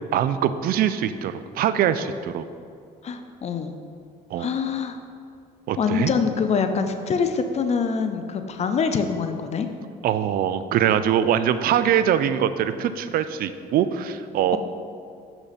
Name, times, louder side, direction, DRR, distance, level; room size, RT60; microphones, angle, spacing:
voice 1, 0.1-2.5 4.3-4.5 5.7-6.1 10.0-14.6, right 9 dB, 60° right, 12 dB, 0.4 m, -23 dB
voice 2, 3.0-3.8 4.4-5.0 5.8-9.7, left 5 dB, 40° left, 7 dB, 0.5 m, -25 dB
6.6 x 5.9 x 4.1 m, 2.3 s
cardioid pair, 110°, 17 cm